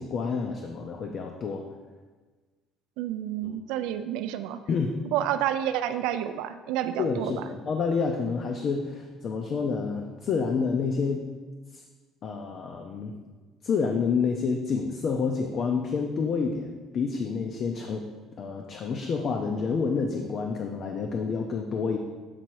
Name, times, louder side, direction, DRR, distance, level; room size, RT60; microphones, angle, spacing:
voice 1, 0.0-1.7 3.4-3.6 4.7-5.0 7.0-11.2 11.7-11.8 12.2-13.2 13.6-18.1 18.4-22.0, left 5 dB, 40° left, 3 dB, 0.5 m, -28 dB
voice 2, 3.0-4.6 5.1-7.3, right 11 dB, 85° right, 10 dB, 0.4 m, -29 dB
7.6 x 4.0 x 4.6 m, 1.4 s
cardioid pair, 165°, 0 cm